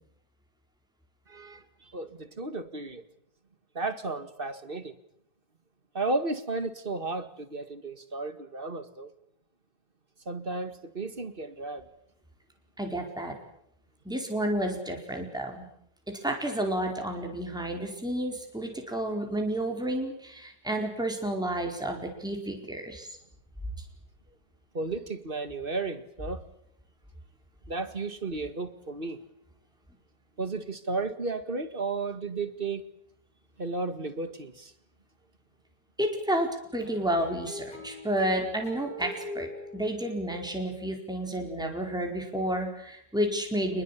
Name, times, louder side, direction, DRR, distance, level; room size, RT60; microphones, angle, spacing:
voice 1, 1.3-1.6 1.9-3.0 3.8-4.9 5.9-9.1 10.3-11.9 24.7-26.4 27.7-29.2 30.4-32.9 33.6-34.7, right 3 dB, 35° right, 11 dB, 2.1 m, -33 dB
voice 2, 12.8-13.3 14.0-15.6 16.2-23.2 36.0-39.5 39.7-43.8, right 1 dB, ahead, 2 dB, 4.6 m, -31 dB
sound 1, 36.8-40.7, left 1 dB, 60° left, 7.2 m, -42 dB
28.0 x 21.5 x 8.5 m, 0.72 s
omnidirectional pair, 1.8 m